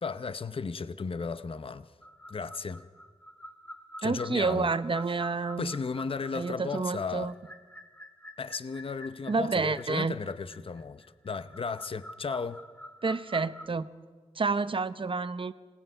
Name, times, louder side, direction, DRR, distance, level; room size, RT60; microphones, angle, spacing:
voice 1, 0.0-1.9 2.3-2.8 4.0-4.7 5.6-7.3 8.4-12.6, left 5 dB, 45° left, 0.7 m, -35 dB
sound 1, 2.0-13.7, equal, 15° left, 1.5 m, -48 dB
voice 2, 4.0-5.7 6.3-7.3 9.3-10.2 13.0-13.9 14.4-15.5, right 4 dB, 40° right, 0.8 m, -29 dB
27.5 x 18.0 x 5.6 m
wide cardioid pair, 90°, 13 cm